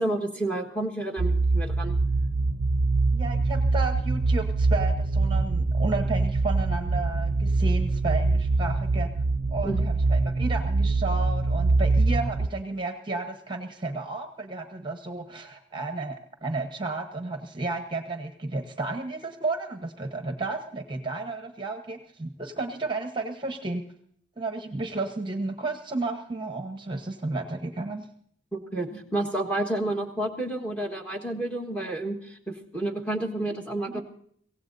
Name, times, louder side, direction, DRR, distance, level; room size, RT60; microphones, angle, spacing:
voice 1, 0.0-2.0 9.6-9.8 28.5-34.0, right 1 dB, 5° left, 2 dB, 1.4 m, -30 dB
sound 1, 1.2-12.5, right 3 dB, 60° right, 0.5 m, -24 dB
voice 2, 3.1-9.1 9.5-23.8 24.4-28.1 33.9-34.0, right 3 dB, 25° right, 6 dB, 1.0 m, -32 dB
24.0 x 17.0 x 2.7 m, 0.64 s
head